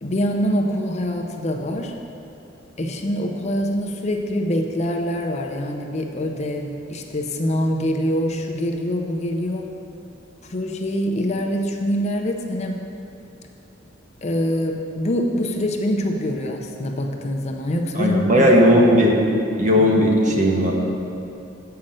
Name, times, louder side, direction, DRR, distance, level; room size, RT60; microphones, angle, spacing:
voice 1, 0.0-1.9 2.8-9.7 10.4-12.8 14.2-18.5, equal, 35° left, 3 dB, 0.6 m, -24 dB
voice 2, 17.9-19.2 19.6-20.7, equal, 40° right, -1 dB, 1.2 m, -16 dB
7.6 x 5.7 x 7.5 m, 2.7 s
head